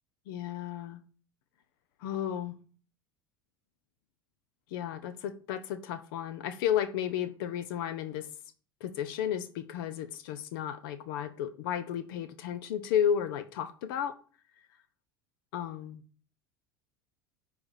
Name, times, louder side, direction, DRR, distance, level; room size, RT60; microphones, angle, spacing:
voice 1, 0.3-1.0 2.0-2.6 4.7-8.3 8.8-14.2 15.5-16.0, left 9 dB, 70° left, 0.6 m, -33 dB
9.6 x 3.3 x 4.2 m
hypercardioid pair, 80°, 12 cm